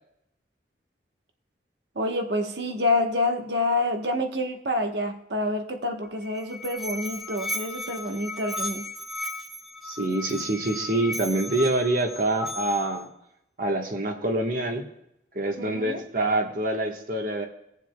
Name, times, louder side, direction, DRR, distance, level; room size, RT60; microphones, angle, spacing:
voice 1, 1.9-8.9 15.6-16.0, left 2 dB, 70° right, 5 dB, 1.1 m, -27 dB
Musical instrument, 6.0-13.0, left 1 dB, ahead, 0.7 m, -36 dB
voice 2, 9.8-13.1 13.6-14.9 15.3-17.5, right 2 dB, 50° right, 3 dB, 1.2 m, -26 dB
20.5 x 7.2 x 2.2 m, 0.81 s
head